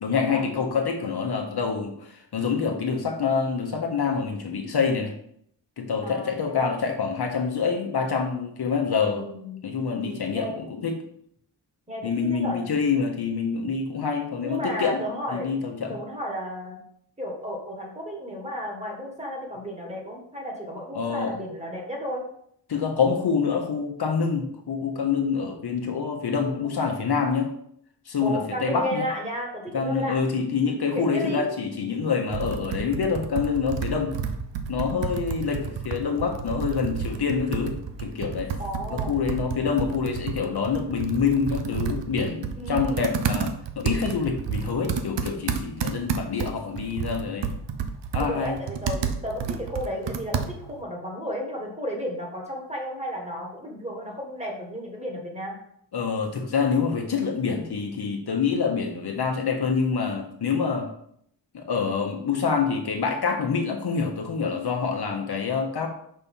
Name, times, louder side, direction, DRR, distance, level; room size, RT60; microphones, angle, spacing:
voice 1, 0.0-5.1 5.8-9.3 9.6-11.0 12.0-15.0 15.3-16.0 20.9-21.3 22.7-27.5 28.1-29.1 29.7-34.1 34.7-37.7 38.0-38.5 38.9-47.5 48.1-48.6 55.9-60.9 61.5-65.9, left 5 dB, 65° left, 2 dB, 1.1 m, -26 dB
voice 2, 6.0-6.6 9.0-9.6 10.0-10.5 11.9-12.6 14.4-15.5 15.9-16.8 17.2-22.2 28.2-30.2 30.9-31.5 38.6-39.1 42.6-43.1 48.2-55.6, equal, 15° right, 0 dB, 1.5 m, -33 dB
Computer keyboard, 32.3-50.8, right 6 dB, 90° right, 0.7 m, -31 dB
5.7 x 4.3 x 5.5 m, 0.68 s
wide cardioid pair, 160°, 42 cm